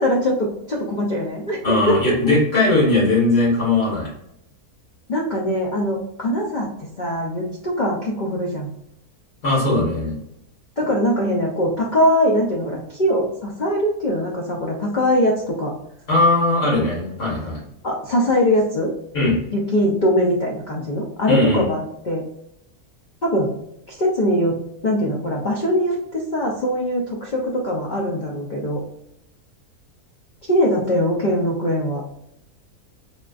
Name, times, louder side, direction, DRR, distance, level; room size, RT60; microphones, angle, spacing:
voice 1, 0.0-2.1 5.1-8.7 10.8-15.7 17.8-18.9 19.5-22.3 23.2-23.5 23.9-28.8 30.5-32.0, equal, 70° left, -2 dB, 0.4 m, -22 dB
voice 2, 1.6-4.1 9.4-10.1 16.1-17.6 19.1-19.4 21.3-21.6, left 2 dB, 55° left, -7 dB, 2.1 m, -19 dB
4.3 x 2.3 x 2.4 m, 0.80 s
omnidirectional pair, 1.5 m